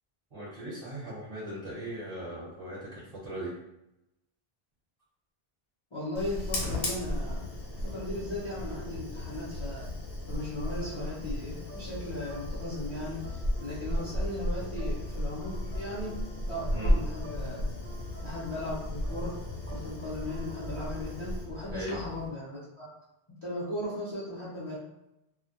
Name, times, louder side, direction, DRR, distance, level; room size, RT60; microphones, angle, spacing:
voice 1, 0.3-3.5 14.0-14.1 16.7-16.9 21.7-21.9, right 1 dB, 35° right, -9 dB, 0.9 m, -39 dB
voice 2, 5.9-7.5 7.8-9.9 10.3-16.2 16.5-17.7 18.2-19.4 19.7-22.9 23.4-24.8, left 1 dB, 35° left, -8 dB, 0.5 m, -37 dB
Fire, 6.1-22.3, left 1 dB, 70° left, 0.8 m, -34 dB
sound 1, 10.6-21.5, left 1 dB, 20° right, 0.4 m, -48 dB
2.1 x 2.0 x 2.8 m, 0.87 s
omnidirectional pair, 1.0 m